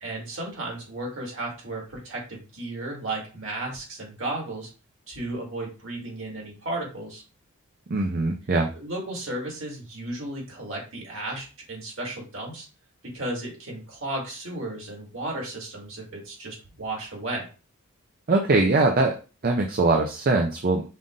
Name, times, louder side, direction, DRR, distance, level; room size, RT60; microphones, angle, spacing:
voice 1, 0.0-4.7 5.1-7.2 8.7-12.7 13.1-17.5, right 2 dB, 60° right, -1 dB, 2.1 m, -34 dB
voice 2, 7.9-8.7 18.3-19.2 19.4-20.8, right 3 dB, 40° right, 3 dB, 0.5 m, -22 dB
5.5 x 2.5 x 3.7 m, 0.33 s
head